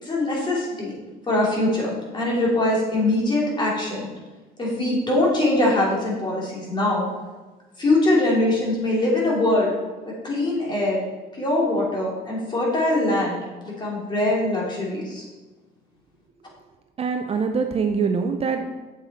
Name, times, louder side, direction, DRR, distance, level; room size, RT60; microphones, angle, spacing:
voice 1, 0.0-0.9 1.3-4.1 4.6-7.1 7.8-9.7 10.0-11.0 11.3-15.3, left 1 dB, 25° left, -4 dB, 3.2 m, -22 dB
voice 2, 17.0-18.6, right 5 dB, 35° right, 5 dB, 0.6 m, -24 dB
7.7 x 7.5 x 4.3 m, 1.2 s
cardioid pair, 110°, 17 cm